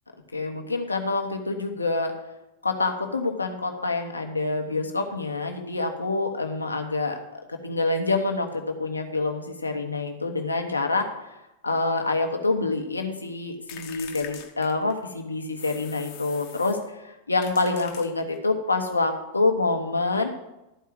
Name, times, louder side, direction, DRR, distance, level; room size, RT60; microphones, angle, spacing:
voice 1, 0.3-2.1 2.6-11.1 11.6-16.8 17.3-20.3, left 3 dB, 80° left, 4 dB, 1.2 m, -26 dB
sound 1, 13.7-15.1 15.6-16.9 17.4-18.5, left 9 dB, 45° left, 1.0 m, -43 dB
12.5 x 4.7 x 7.5 m, 0.95 s
figure-of-eight pair, 90°, 0 cm